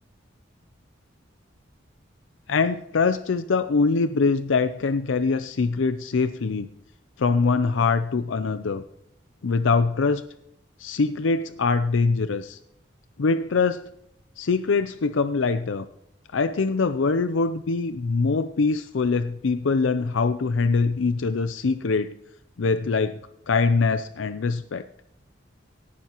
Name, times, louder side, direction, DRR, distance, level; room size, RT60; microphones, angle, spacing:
voice 1, 2.5-6.7 7.2-8.8 9.4-10.2 10.8-12.6 13.2-13.8 14.4-15.9 16.3-22.1 22.6-23.2 23.5-24.8, left 4 dB, 85° left, 11 dB, 0.5 m, -23 dB
18.0 x 12.0 x 3.0 m, 0.78 s
head